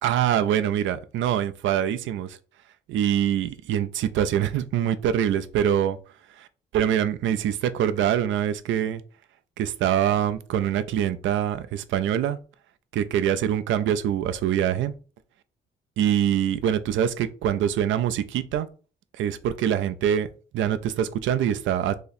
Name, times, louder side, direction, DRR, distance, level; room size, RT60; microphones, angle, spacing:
voice 1, 0.0-2.4 2.9-6.0 6.4-6.5 6.7-9.0 9.6-12.4 12.9-14.9 16.0-18.7 19.2-20.3 20.5-21.9, right 10 dB, 75° right, 0.4 m, -24 dB
2.9 x 2.7 x 4.0 m
cardioid pair, 90°, 20 cm